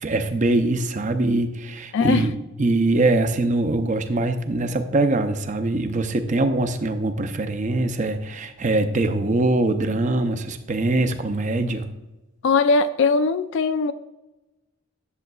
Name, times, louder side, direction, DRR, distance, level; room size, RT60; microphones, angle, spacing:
voice 1, 0.0-11.9, right 2 dB, 40° right, 8 dB, 0.6 m, -23 dB
voice 2, 1.9-2.3 12.4-13.9, left 4 dB, 60° left, 11 dB, 0.3 m, -20 dB
10.5 x 7.1 x 2.3 m, 1.0 s
head